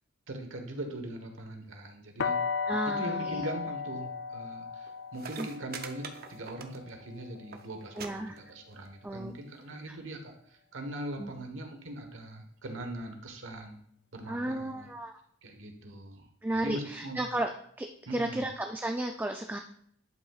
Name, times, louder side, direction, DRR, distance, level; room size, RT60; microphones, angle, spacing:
voice 1, 0.3-2.4 2.9-13.8 14.1-14.9 15.4-17.2 18.1-18.4, right 1 dB, 80° right, 5 dB, 1.3 m, -41 dB
sound 1, 2.2-8.0, left 5 dB, 60° left, 0.5 m, -35 dB
voice 2, 2.7-3.5 5.4-5.5 8.0-8.4 9.0-9.3 9.9-10.0 11.2-11.3 14.3-15.2 16.4-17.5 17.8-19.6, right 1 dB, 10° right, 4 dB, 0.3 m, -33 dB
sound 2, 4.9-5.0 5.1-7.1 7.3-7.6 8.0-8.1 8.4-8.9 9.7-9.8, right 6 dB, 50° right, 0.7 m, -43 dB
11.0 x 5.6 x 2.4 m, 0.65 s
head